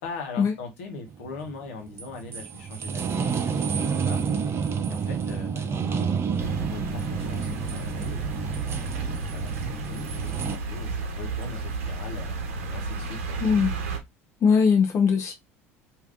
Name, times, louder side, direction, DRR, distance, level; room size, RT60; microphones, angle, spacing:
voice 1, 0.0-4.2 4.5-4.6 4.9-8.2 8.6-13.4, left 4 dB, 75° left, 1.0 m, -41 dB
sound 1, 1.1-10.6, right 6 dB, 35° right, 0.5 m, -29 dB
sound 2, 6.4-14.0, right 3 dB, 80° right, 0.7 m, -32 dB
voice 2, 13.4-13.7 14.4-15.3, left 6 dB, 45° left, 0.7 m, -20 dB
3.3 x 2.6 x 2.3 m
hypercardioid pair, 70°, 7 cm